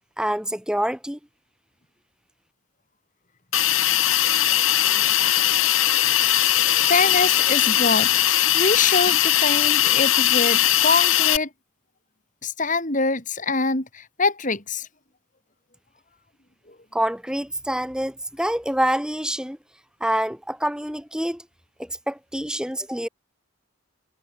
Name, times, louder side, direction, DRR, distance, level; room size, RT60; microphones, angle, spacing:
voice 1, 0.2-1.2 16.9-19.6 20.0-21.4 21.8-23.1, right 1 dB, 5° right, 6.3 m, -26 dB
Hiss, 3.5-11.4, left 12 dB, 80° left, 2.6 m, -19 dB
voice 2, 6.4-11.5 12.4-14.9, left 3 dB, 40° left, 4.1 m, -25 dB
head